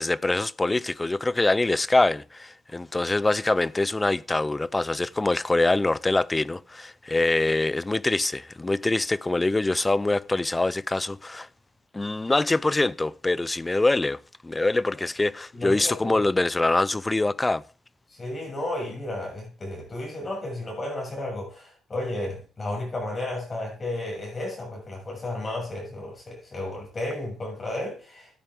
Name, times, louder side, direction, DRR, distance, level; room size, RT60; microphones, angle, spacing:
voice 1, 0.0-11.5 11.9-17.6, left 2 dB, 15° left, 0.4 m, -24 dB
voice 2, 15.5-16.2 18.1-28.4, left 1 dB, 35° left, 6.9 m, -33 dB
14.0 x 8.7 x 3.6 m
cardioid pair, 90°, 0 cm